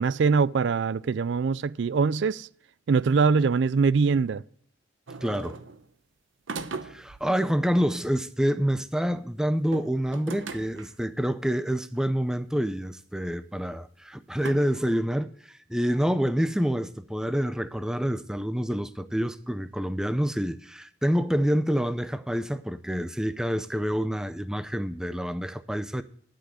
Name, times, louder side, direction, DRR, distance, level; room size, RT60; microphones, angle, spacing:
voice 1, 0.0-2.5 2.9-4.4, right 5 dB, 65° right, 0.4 m, -23 dB
sound 1, 5.1-5.9 6.5-7.3 9.6-11.0 11.9-12.0 12.9-13.0 14.4-14.5, right 4 dB, 85° right, 0.9 m, -38 dB
voice 2, 5.2-5.6 6.8-26.0, equal, 5° right, 0.5 m, -27 dB
11.0 x 6.4 x 7.9 m
head